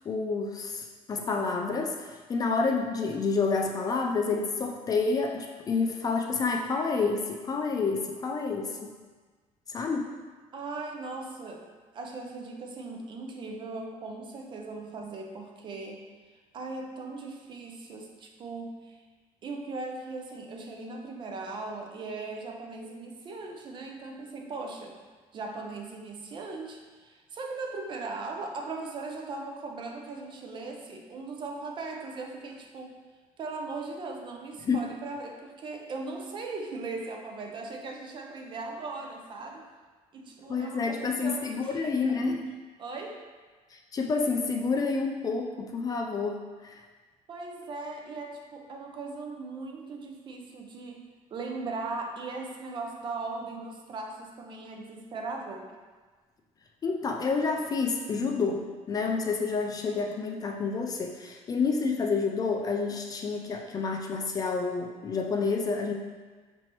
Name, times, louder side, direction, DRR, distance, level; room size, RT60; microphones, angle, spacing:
voice 1, 0.1-8.9 9.7-10.1 34.6-34.8 40.5-42.5 43.7-46.8 56.8-65.9, left 4 dB, 30° left, 2 dB, 0.4 m, -29 dB
voice 2, 10.5-16.0 16.5-19.0 19.4-25.0 25.3-33.0 33.4-39.6 40.1-42.3 42.8-43.2 47.3-51.0 51.3-55.7, right 3 dB, 40° right, 2 dB, 0.5 m, -39 dB
5.2 x 3.1 x 2.9 m, 1.4 s
cardioid pair, 140°, 12 cm